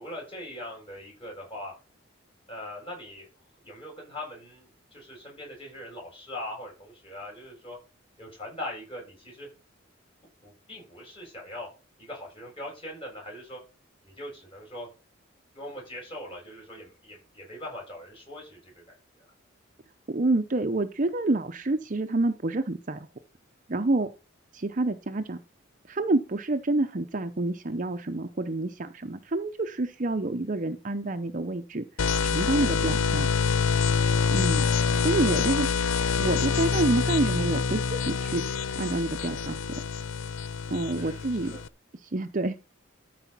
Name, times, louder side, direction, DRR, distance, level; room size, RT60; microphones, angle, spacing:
voice 1, 0.0-1.7 2.5-3.3 3.6-7.8 8.2-9.5 10.4-11.7 12.0-13.6 14.0-14.9 15.5-19.3 40.9-41.6, left 1 dB, 30° left, -2 dB, 7.9 m, -41 dB
voice 2, 20.1-23.1 23.7-24.1 24.5-25.4 25.9-31.8 32.2-33.3 34.3-34.6 35.0-35.7 36.2-38.4 38.8-39.6 40.7-41.5 42.1-42.6, right 2 dB, 40° right, 9 dB, 0.7 m, -28 dB
sound 1, 32.0-41.7, left 5 dB, 90° left, 0.6 m, -26 dB
13.0 x 5.0 x 6.0 m, 0.31 s
head